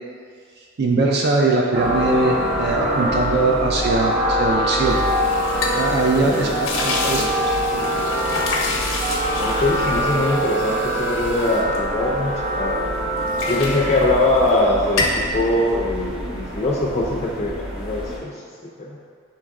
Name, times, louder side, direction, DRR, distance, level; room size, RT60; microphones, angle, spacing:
voice 1, 0.8-5.0 5.7-6.5 6.8-7.3 7.7-7.8, right 2 dB, 55° right, -1 dB, 0.4 m, -20 dB
sound 1, 1.7-18.2, equal, 30° right, 1.1 m, -24 dB
sound 2, 4.8-12.6 12.9-14.6 14.9-15.3, left 3 dB, 80° left, 0.7 m, -29 dB
voice 2, 6.2-7.3 9.4-12.8 13.5-15.1 15.3-18.4 18.8-19.0, left 2 dB, 30° left, -5 dB, 0.4 m, -22 dB
4.6 x 3.0 x 3.6 m, 2.1 s
head